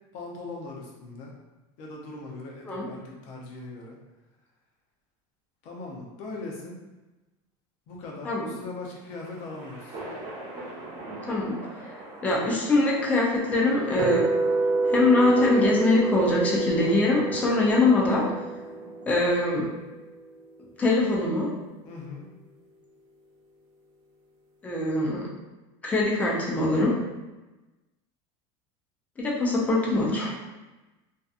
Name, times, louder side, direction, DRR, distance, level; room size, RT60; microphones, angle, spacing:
voice 1, 0.1-1.3 1.8-4.0 5.6-6.8 7.9-10.0 21.8-22.2, left 3 dB, 50° left, -2 dB, 0.6 m, -40 dB
sound 1, 8.9-19.4, right 2 dB, 45° right, 0.9 m, -41 dB
voice 2, 11.3-11.6 12.2-14.2 14.9-18.2 19.1-19.7 20.8-21.5 24.6-25.2 25.8-26.9 29.2-30.3, left 2 dB, 10° left, -4 dB, 0.4 m, -23 dB
sound 2, 14.0-20.1, right 3 dB, 70° right, 0.4 m, -28 dB
2.7 x 2.2 x 2.4 m, 1.1 s
cardioid pair, 175°, 14 cm